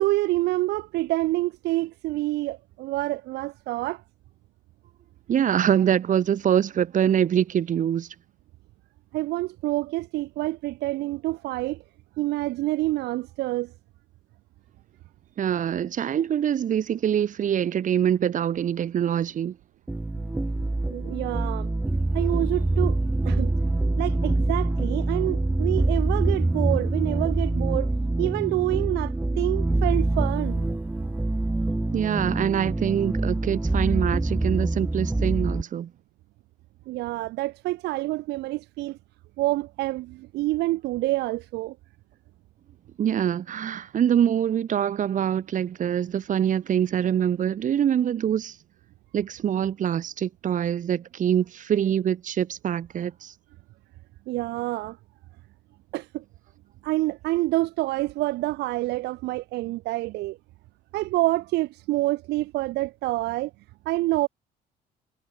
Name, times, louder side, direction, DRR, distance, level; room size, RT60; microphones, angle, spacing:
voice 1, 0.0-4.0 9.1-11.8 12.2-13.7 20.9-21.7 22.1-23.0 23.2-23.5 24.0-27.9 28.2-30.6 36.9-39.0 39.4-41.8 54.3-55.0 55.9-56.2 56.8-60.4 60.9-63.5 63.9-64.3, right 19 dB, 85° right, 2.3 m, -27 dB
voice 2, 5.3-8.1 15.4-19.6 31.9-35.9 43.0-48.5 49.1-53.3, right 9 dB, 50° right, 2.4 m, -24 dB
sound 1, 19.9-35.6, right 2 dB, 10° right, 1.2 m, -25 dB
cardioid pair, 110°, 17 cm